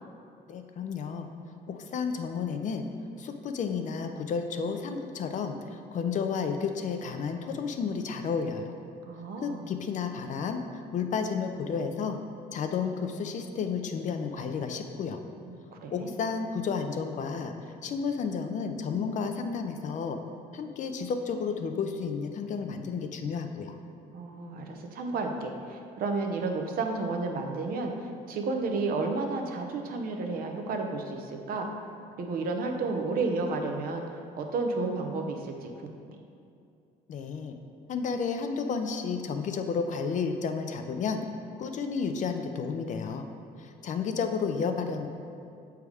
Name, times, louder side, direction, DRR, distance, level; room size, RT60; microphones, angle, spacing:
voice 1, 0.5-1.3 1.7-2.9 3.2-8.7 9.4-12.2 12.5-15.2 15.9-20.2 20.5-23.8 37.1-37.5 37.9-41.2 41.6-43.3 43.6-45.1, left 5 dB, 45° left, 6 dB, 0.5 m, -32 dB
voice 2, 9.0-9.6 15.5-16.2 24.1-31.7 32.2-35.9, right 3 dB, 60° right, 3 dB, 0.7 m, -32 dB
6.5 x 3.5 x 4.8 m, 2.5 s
cardioid pair, 110°, 17 cm